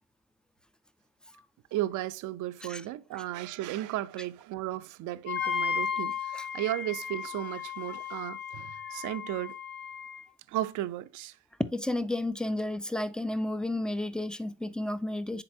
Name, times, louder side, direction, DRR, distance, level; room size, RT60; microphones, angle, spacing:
voice 1, 1.7-9.6 10.5-11.4, right 14 dB, 55° right, 0.6 m, -35 dB
Wind instrument woodwind instrument, 5.2-10.2, left 7 dB, 70° left, 2.3 m, -35 dB
voice 2, 11.6-15.4, left 1 dB, ahead, 0.6 m, -32 dB
9.8 x 4.0 x 2.7 m
hypercardioid pair, 65°, 36 cm